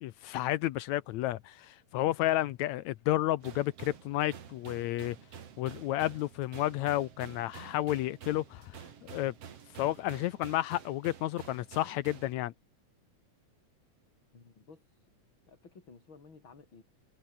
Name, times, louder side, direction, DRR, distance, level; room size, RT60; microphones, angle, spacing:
voice 1, 0.0-5.2 5.6-9.3 9.7-12.5, left 15 dB, 75° left, 1.9 m, -31 dB
sound 1, 3.4-12.3, right 8 dB, 55° right, 2.9 m, -49 dB
voice 2, 14.3-15.1 15.4-16.8, left 4 dB, 40° left, 4.8 m, -55 dB
omnidirectional pair, 3.5 m